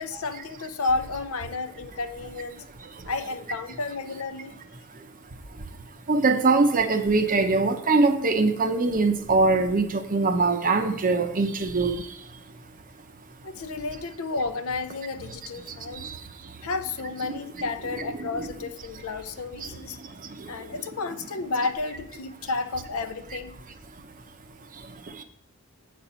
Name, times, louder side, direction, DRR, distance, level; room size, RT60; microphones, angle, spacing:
voice 1, 0.0-2.6 3.1-4.6 13.4-16.1 16.6-20.0 20.5-23.5, left 3 dB, 65° left, 10 dB, 0.6 m, -31 dB
voice 2, 6.1-12.0 18.2-18.5 19.6-19.7, right 3 dB, 40° right, 8 dB, 0.7 m, -22 dB
8.3 x 4.3 x 6.7 m, 0.77 s
head